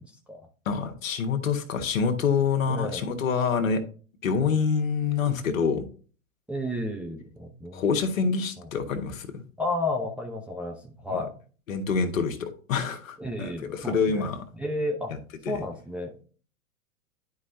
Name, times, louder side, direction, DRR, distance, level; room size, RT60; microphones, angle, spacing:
voice 1, 0.0-0.5 2.7-3.1 6.5-8.1 8.6-8.7 9.6-11.3 13.2-15.1 15.5-16.2, left 1 dB, 5° right, 0.6 m, -32 dB
voice 2, 0.6-3.8 4.2-5.9 7.7-9.4 11.7-13.5 13.8-14.4 15.5-15.6, left 5 dB, 65° left, 1.3 m, -26 dB
11.0 x 4.8 x 2.6 m
figure-of-eight pair, 105°, 43 cm